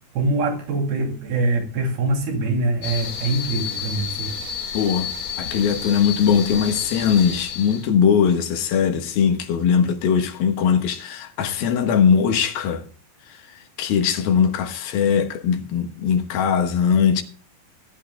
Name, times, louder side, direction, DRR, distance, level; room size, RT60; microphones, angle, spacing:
voice 1, 0.1-4.4, right 2 dB, 80° right, 4.6 m, -24 dB
sound 1, 2.8-7.8, left 7 dB, 50° left, 2.8 m, -31 dB
voice 2, 4.7-5.1 5.4-12.9 13.8-17.2, left 7 dB, 75° left, 3.1 m, -20 dB
19.5 x 11.5 x 2.2 m
omnidirectional pair, 4.3 m